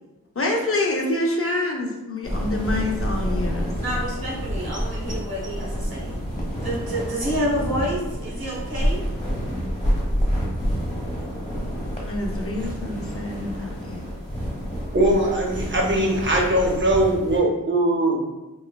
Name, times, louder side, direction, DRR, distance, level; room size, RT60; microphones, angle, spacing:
voice 1, 0.4-3.7 12.1-14.0, left 2 dB, 40° left, 0 dB, 0.5 m, -26 dB
sound 1, 2.2-17.4, equal, 20° left, 1.1 m, -28 dB
voice 2, 3.8-6.2 6.6-9.0, equal, 90° right, -4 dB, 0.9 m, -28 dB
voice 3, 14.9-18.3, right 1 dB, 35° right, -1 dB, 0.6 m, -21 dB
3.0 x 2.1 x 2.2 m, 1.0 s
wide cardioid pair, 45°, 35 cm